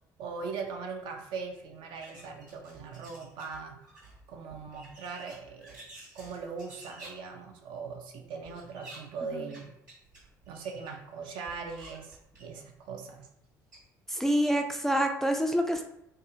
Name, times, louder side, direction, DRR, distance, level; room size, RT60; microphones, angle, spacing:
voice 1, 0.2-3.8 4.3-5.8 6.1-9.7 10.5-13.3, right 5 dB, 55° right, 3 dB, 0.5 m, -40 dB
sound 1, 2.0-3.6 3.8-7.1 8.4-9.0 9.5-9.6 9.9-10.9 11.5-12.7 13.4-13.5 13.7-13.8, right 2 dB, 85° right, 1.0 m, -51 dB
voice 2, 14.1-15.9, equal, 5° left, 3 dB, 0.3 m, -27 dB
2.6 x 2.3 x 2.8 m, 0.78 s
figure-of-eight pair, 55°, 10 cm